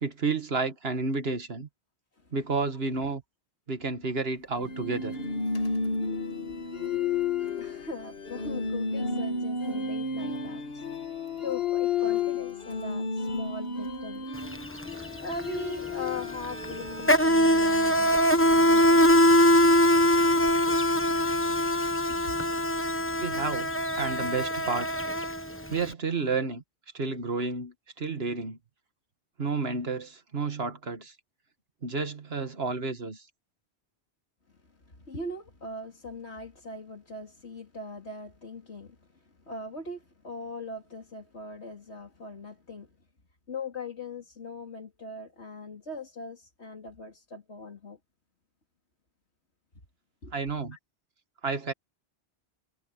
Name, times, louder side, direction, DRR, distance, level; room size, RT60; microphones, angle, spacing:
voice 1, 0.0-1.7 2.3-3.2 3.7-5.2 23.2-23.7 24.0-25.1 25.7-26.6 26.9-28.6 29.4-31.1 31.8-33.2 50.3-50.8 51.4-51.7, right 4 dB, 65° right, 2.2 m, -31 dB
sound 1, 4.6-19.7, left 4 dB, 60° left, 1.8 m, -32 dB
voice 2, 5.8-10.8 11.4-14.3 14.9-19.0 22.1-22.2 34.5-34.6 34.9-42.9 43.5-48.0 50.2-50.3 50.7-50.8, left 2 dB, 80° left, 3.5 m, -41 dB
Insect, 14.4-14.6 14.8-25.8, equal, 10° left, 1.1 m, -23 dB
omnidirectional pair, 1.1 m